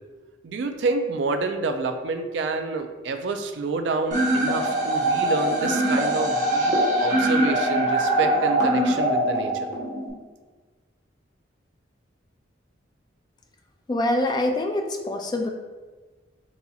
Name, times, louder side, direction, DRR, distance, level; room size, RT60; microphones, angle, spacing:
voice 1, 0.4-9.7, right 4 dB, 70° right, 7 dB, 0.4 m, -28 dB
sound 1, 4.1-10.1, right 1 dB, 45° right, 0.9 m, -22 dB
voice 2, 13.9-15.5, left 1 dB, 20° left, 4 dB, 0.3 m, -25 dB
4.1 x 3.9 x 2.3 m, 1.3 s
head